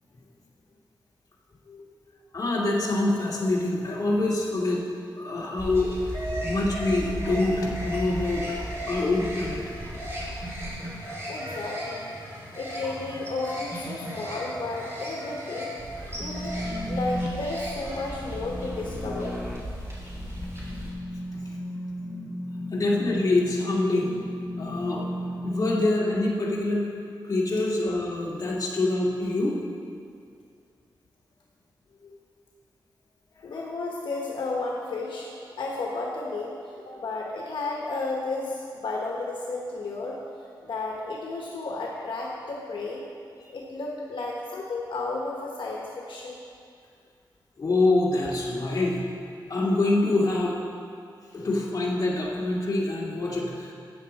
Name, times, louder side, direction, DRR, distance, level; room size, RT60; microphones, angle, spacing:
voice 1, 2.3-4.8 5.2-5.9 6.4-8.5 8.9-9.6 16.1-16.3 20.6-20.7 22.7-24.1 24.6-25.0 25.4-26.8 27.2-29.5 32.0-32.1 47.6-49.0 49.5-50.6 51.3-53.7, left 2 dB, 45° left, -5 dB, 2.1 m, -25 dB
sound 1, 5.6-20.9, equal, 30° right, 2.8 m, -35 dB
voice 2, 11.3-12.1 12.5-15.7 16.2-19.4 33.4-35.3 35.6-40.2 40.6-43.0 43.5-46.4, left 3 dB, 75° left, -2 dB, 1.2 m, -33 dB
sound 2, 16.2-25.8, equal, 5° right, 0.7 m, -34 dB
13.5 x 8.6 x 4.2 m, 2.4 s
wide cardioid pair, 140°, 8 cm